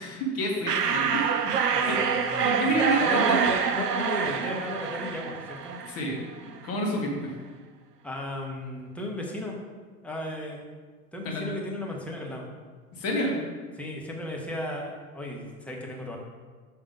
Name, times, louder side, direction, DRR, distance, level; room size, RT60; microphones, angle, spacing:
voice 1, 0.0-1.5 1.9-2.0 2.4-3.4 5.9-6.2 6.6-7.3 11.2-11.4 12.9-13.4, equal, 30° left, 0 dB, 1.6 m, -29 dB
sound 1, 0.7-6.2, right 6 dB, 90° right, 0.6 m, -26 dB
voice 2, 1.7-2.6 3.0-5.8 8.0-9.6 10.0-10.6 11.1-12.5 13.8-16.2, left 1 dB, 5° left, -1 dB, 0.9 m, -35 dB
6.7 x 3.6 x 5.0 m, 1.5 s
figure-of-eight pair, 95°, 46 cm